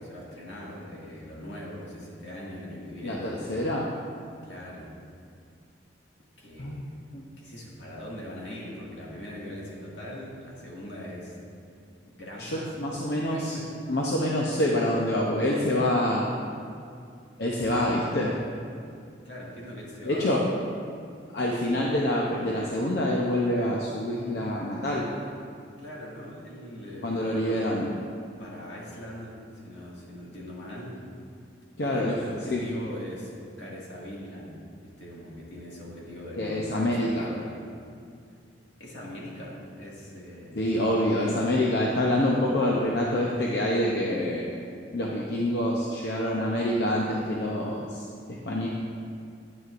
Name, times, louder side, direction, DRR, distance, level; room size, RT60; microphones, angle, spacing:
voice 1, 0.0-3.6 4.4-4.9 6.4-6.9 7.4-11.4 12.1-12.7 13.0-13.6 19.2-20.4 25.8-27.7 28.4-29.4 29.6-30.9 31.8-37.6 38.8-40.6, left 1 dB, 80° left, -5 dB, 2.0 m, -41 dB
voice 2, 3.0-3.9 6.6-6.8 7.1-7.2 12.4-13.5 13.9-16.3 17.4-18.3 20.1-20.4 21.3-25.1 27.0-27.9 31.8-32.2 32.5-32.6 36.4-37.3 40.5-44.4 44.9-48.7, left 1 dB, 60° left, -3 dB, 0.7 m, -26 dB
9.5 x 9.1 x 2.5 m, 2.4 s
head